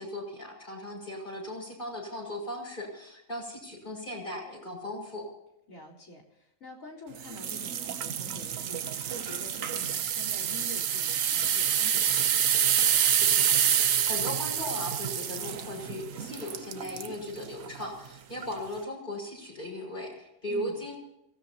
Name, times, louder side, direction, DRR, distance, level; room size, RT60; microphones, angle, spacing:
voice 1, 0.0-5.3 13.8-21.0, left 1 dB, 35° left, -1 dB, 6.4 m, -37 dB
voice 2, 5.7-13.0 20.5-20.8, left 2 dB, 75° left, 1 dB, 4.3 m, -47 dB
sound 1, 7.2-17.1 17.7-17.9 18.4-18.5, right 9 dB, 75° right, 1.3 m, -27 dB
28.0 x 17.0 x 2.9 m, 0.84 s
omnidirectional pair, 1.4 m